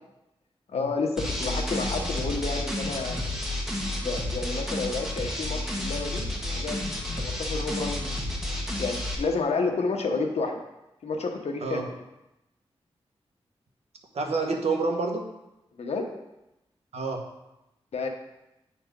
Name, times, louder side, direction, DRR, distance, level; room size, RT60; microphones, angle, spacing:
voice 1, 0.7-3.2 4.0-6.3 6.5-6.8 7.2-8.2 8.8-10.6 11.0-11.8 15.8-16.1 17.9-18.1, left 3 dB, 85° left, 3 dB, 1.1 m, -30 dB
sound 1, 1.2-9.2, left 1 dB, 5° right, 1.5 m, -31 dB
voice 2, 14.1-15.3 16.9-17.2, right 3 dB, 80° right, 2 dB, 1.3 m, -28 dB
9.2 x 4.4 x 5.2 m, 0.92 s
wide cardioid pair, 95°, 11 cm